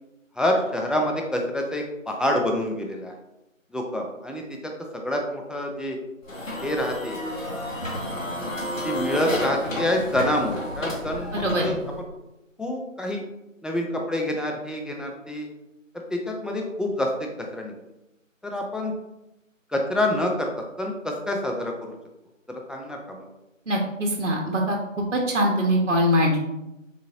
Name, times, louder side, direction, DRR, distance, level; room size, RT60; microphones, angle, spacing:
voice 1, 0.4-3.1 3.7-6.0 6.6-7.2 8.4-8.5 8.8-12.1 12.6-13.2 13.6-15.5 15.9-17.1 17.4-17.7 18.4-18.9 19.7-20.5 20.8-21.9 22.5-23.3, left 1 dB, ahead, 1 dB, 0.3 m, -27 dB
sound 1, 6.2-12.0, left 1 dB, 75° left, 1.0 m, -31 dB
voice 2, 11.4-11.7 23.7-24.8 25.1-26.4, equal, 60° right, 0 dB, 0.7 m, -22 dB
3.6 x 2.4 x 2.8 m, 0.93 s
figure-of-eight pair, 175°, 40 cm